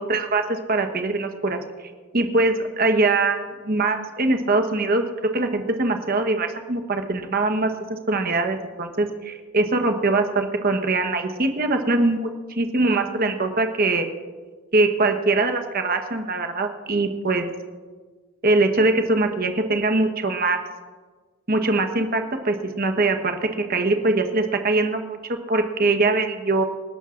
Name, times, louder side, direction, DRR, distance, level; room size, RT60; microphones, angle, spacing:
voice 1, 0.0-1.6 2.1-5.0 5.3-12.3 12.6-14.1 14.7-17.4 18.4-20.6 21.5-26.6, right 2 dB, 45° right, 6 dB, 1.2 m, -22 dB
28.0 x 11.5 x 2.6 m, 1.4 s
head